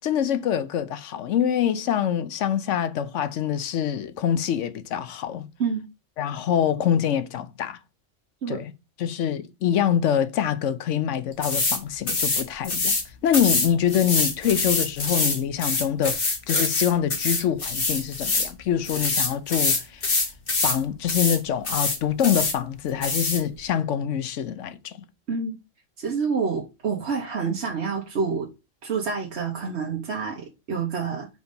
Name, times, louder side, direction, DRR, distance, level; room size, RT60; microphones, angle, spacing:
voice 1, 0.0-5.5 6.2-7.8 8.5-8.7 9.0-12.9 13.2-16.2 16.5-20.1 20.6-25.0, left 9 dB, 75° left, 1.0 m, -25 dB
sound 1, 11.4-11.8 12.1-13.0 13.3-18.5 18.8-20.8 21.1-21.4 21.6-22.6 23.0-23.4, left 3 dB, 45° left, 1.5 m, -25 dB
voice 2, 26.0-28.5 28.8-31.3, right 5 dB, 60° right, 1.3 m, -28 dB
5.1 x 3.8 x 5.3 m
omnidirectional pair, 1.3 m